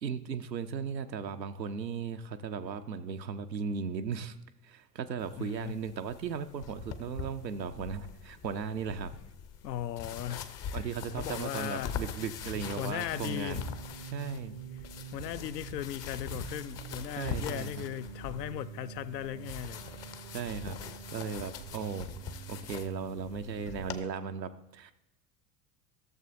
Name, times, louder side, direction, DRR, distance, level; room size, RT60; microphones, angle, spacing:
voice 1, 0.0-4.4 4.6-9.1 10.7-13.6 14.0-14.6 17.2-17.9 20.3-20.8 21.1-22.1 22.5-24.9, right 6 dB, 90° right, 0.6 m, -36 dB
sound 1, 5.2-24.0, left 7 dB, 30° left, 0.6 m, -43 dB
voice 2, 5.4-5.8 9.6-10.9 11.2-12.0 12.8-13.6 15.1-19.8, left 12 dB, 80° left, 0.5 m, -37 dB
sound 2, 12.5-24.0, right 8 dB, 35° right, 0.5 m, -46 dB
14.5 x 6.7 x 2.6 m
figure-of-eight pair, 75°, 49 cm